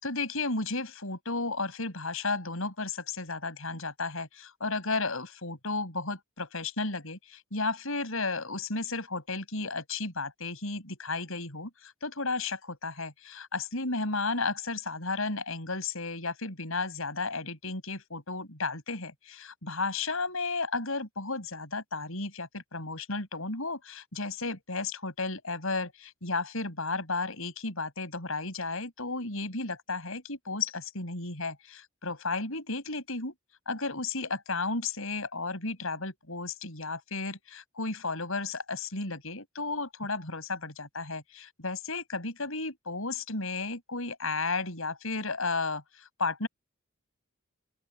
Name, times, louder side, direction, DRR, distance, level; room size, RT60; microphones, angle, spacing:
voice 1, 0.0-33.3 33.7-46.5, left 3 dB, 70° left, 6.8 m, -33 dB
open air
head